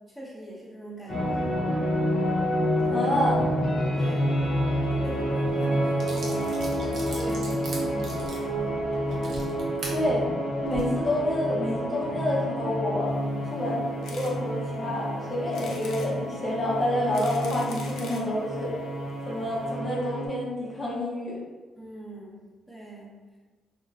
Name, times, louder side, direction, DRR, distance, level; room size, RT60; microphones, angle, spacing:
voice 1, 0.0-1.8 2.8-3.1 3.6-4.4 4.8-8.8 21.7-23.1, right 1 dB, 10° right, -6 dB, 0.8 m, -42 dB
sound 1, 1.1-20.3, equal, 50° left, 1.0 m, -28 dB
voice 2, 2.9-3.4 9.9-10.3 10.6-13.2 13.5-13.8 14.1-18.7 19.3-21.4, left 1 dB, 30° left, -5 dB, 0.7 m, -28 dB
sound 2, 5.5-5.6 6.0-10.0 10.5-10.8, right 2 dB, 60° right, 0.7 m, -40 dB
sound 3, 14.0-14.3 14.8-14.9 15.5-16.1 16.9-18.3 19.1-19.2 19.4-19.5 19.7-19.8, left 3 dB, 75° left, 0.4 m, -43 dB
3.0 x 2.3 x 2.3 m, 1.3 s
cardioid pair, 90°, 0 cm